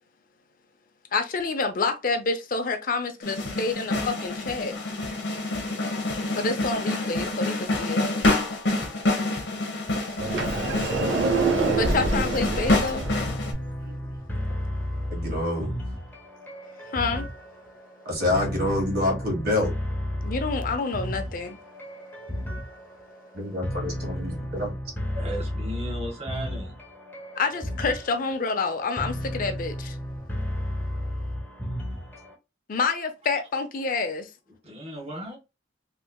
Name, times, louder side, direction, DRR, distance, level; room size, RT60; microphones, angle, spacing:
voice 1, 1.1-4.7 6.3-8.0 11.7-13.0 16.9-17.3 20.2-21.6 27.4-29.9 32.7-34.3, left 4 dB, 50° left, 0.5 m, -28 dB
sound 1, 3.2-13.5, left 2 dB, 65° left, 1.0 m, -27 dB
Sliding door, 10.2-13.2, right 3 dB, 85° right, 0.7 m, -25 dB
sound 2, 13.0-32.3, equal, 10° left, 0.8 m, -33 dB
voice 2, 15.1-15.7 18.0-19.7 23.3-24.7, left 1 dB, 55° right, 1.6 m, -27 dB
voice 3, 25.1-26.7 34.6-35.4, equal, 35° right, 1.5 m, -36 dB
3.2 x 3.2 x 2.2 m
head